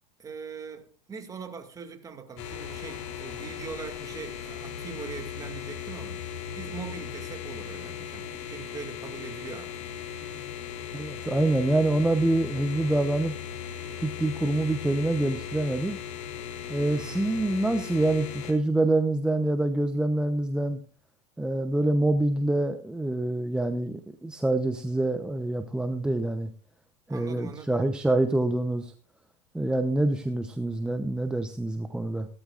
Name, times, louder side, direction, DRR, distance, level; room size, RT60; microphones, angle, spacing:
voice 1, 0.2-9.8 16.8-17.3 27.1-27.9, right 6 dB, 20° right, 2.3 m, -42 dB
sound 1, 2.4-18.5, left 8 dB, 65° left, 3.5 m, -38 dB
voice 2, 10.9-13.3 14.0-16.0 16.7-20.8 21.4-26.5 27.1-28.9 29.5-32.3, right 2 dB, 5° right, 0.8 m, -26 dB
16.5 x 13.5 x 2.5 m
supercardioid pair, 120°, 16 cm